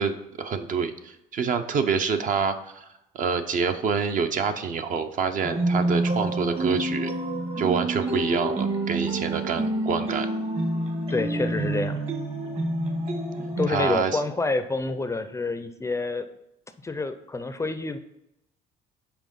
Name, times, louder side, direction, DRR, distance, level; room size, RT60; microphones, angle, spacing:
voice 1, 0.0-2.9 3.1-7.1 7.6-10.3 13.7-14.2, right 6 dB, 50° right, 8 dB, 0.7 m, -27 dB
sound 1, 5.4-13.7, right 1 dB, 35° right, 1.2 m, -28 dB
voice 2, 11.1-12.0 13.6-16.3 16.8-18.0, left 3 dB, 15° left, 10 dB, 0.4 m, -28 dB
6.1 x 4.3 x 5.3 m, 0.87 s
cardioid pair, 110°, 17 cm